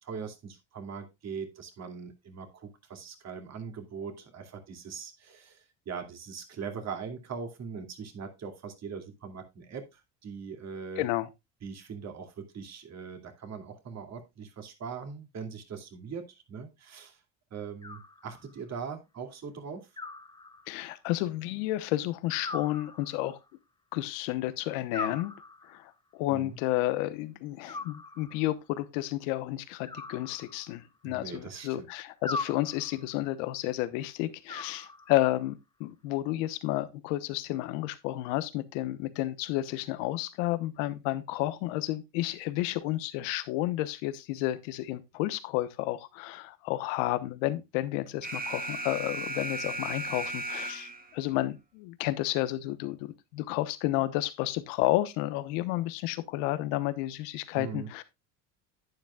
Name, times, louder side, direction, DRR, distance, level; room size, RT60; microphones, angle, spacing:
voice 1, 0.0-11.1 11.6-17.2 17.5-19.9 26.3-26.6 31.0-31.9 57.5-57.9, right 6 dB, 45° right, 2.6 m, -41 dB
voice 2, 11.0-11.3 20.7-23.4 23.9-25.3 25.6-58.0, left 16 dB, 90° left, 1.1 m, -31 dB
Animal, 17.8-18.7 20.0-21.0 22.4-23.5 24.9-25.9 27.7-28.6 29.9-31.0 32.2-33.2 34.5-35.4, left 3 dB, 10° left, 0.9 m, -40 dB
Alarm, 48.2-51.2, right 2 dB, 25° right, 1.6 m, -35 dB
11.0 x 9.3 x 2.3 m
supercardioid pair, 100°, 37 cm